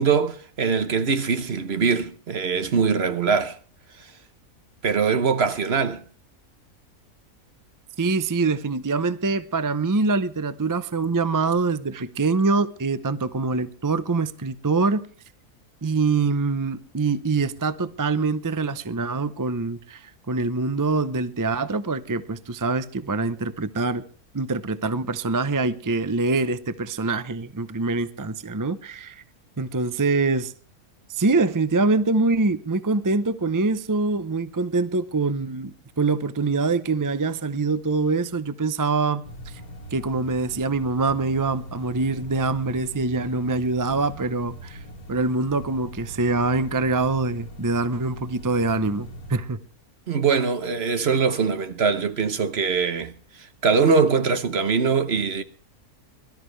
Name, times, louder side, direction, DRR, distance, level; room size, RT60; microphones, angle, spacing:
voice 1, 0.0-3.6 4.8-6.0 50.1-53.1 53.6-55.4, right 5 dB, 50° right, 1.2 m, -22 dB
voice 2, 8.0-15.0 15.8-24.0 24.3-29.2 29.6-30.5 31.1-39.5 39.9-44.8 45.1-49.6, right 3 dB, 30° right, 0.4 m, -24 dB
sound 1, 39.3-49.4, right 1 dB, 80° left, 2.7 m, -41 dB
22.5 x 13.0 x 3.3 m
omnidirectional pair, 1.5 m